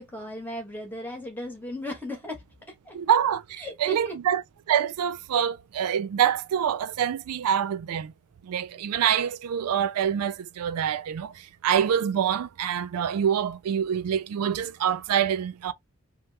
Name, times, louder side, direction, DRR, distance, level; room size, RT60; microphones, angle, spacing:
voice 1, 0.0-2.4 2.8-3.0 3.6-4.2, left 1 dB, 10° left, 1.1 m, -36 dB
voice 2, 2.9-4.4 4.7-8.1 8.4-15.7, right 9 dB, 85° right, 0.3 m, -26 dB
2.9 x 2.2 x 3.2 m
head